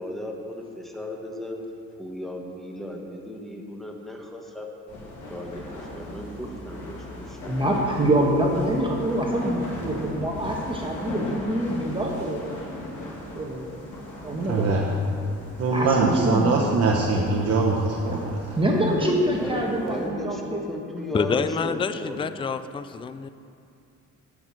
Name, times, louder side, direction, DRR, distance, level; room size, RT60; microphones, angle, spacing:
voice 1, 0.0-1.6 2.0-4.7 5.1-7.5 16.2-16.5 18.7-22.4, left 1 dB, ahead, 1 dB, 1.5 m, -35 dB
sound 1, 4.9-20.1, left 1 dB, 80° left, 2.4 m, -38 dB
voice 2, 7.5-12.6 13.3-13.7 14.2-14.8 15.7-16.6 18.6-20.6, right 1 dB, 15° right, -2 dB, 1.5 m, -25 dB
voice 3, 14.4-14.8 15.6-18.4, right 3 dB, 55° right, -2 dB, 1.1 m, -22 dB
voice 4, 21.1-23.3, left 5 dB, 20° left, 12 dB, 0.4 m, -27 dB
9.8 x 6.4 x 7.7 m, 2.4 s
cardioid pair, 90°, 30 cm